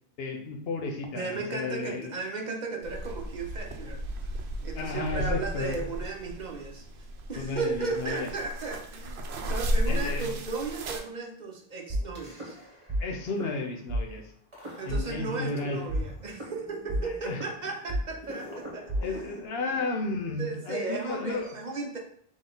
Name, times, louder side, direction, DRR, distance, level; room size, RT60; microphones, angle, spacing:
voice 1, 0.2-2.1 4.8-5.8 7.3-8.3 9.9-10.3 13.0-14.2 14.8-15.8 17.2-17.4 19.0-21.5, left 3 dB, 75° left, 3 dB, 1.0 m, -33 dB
voice 2, 1.1-4.3 4.6-12.6 14.8-19.4 20.4-22.0, right 4 dB, 50° right, 1 dB, 0.7 m, -35 dB
sound 1, 2.8-11.0, equal, 85° right, 0.9 m, -34 dB
sound 2, 11.9-13.0 13.3-13.5 13.9-14.0 14.5-15.5 15.9-19.9, right 1 dB, 30° right, 1.1 m, -33 dB
3.9 x 3.1 x 3.8 m, 0.64 s
omnidirectional pair, 1.0 m